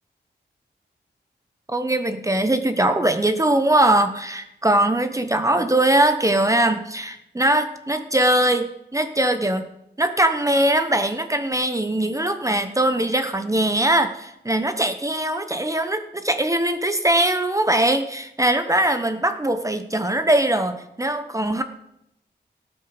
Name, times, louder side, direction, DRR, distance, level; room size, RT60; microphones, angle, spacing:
voice 1, 1.7-9.7 10.0-21.6, right 1 dB, 15° right, 8 dB, 1.0 m, -21 dB
18.0 x 8.0 x 5.1 m, 0.81 s
wide cardioid pair, 95°, 18 cm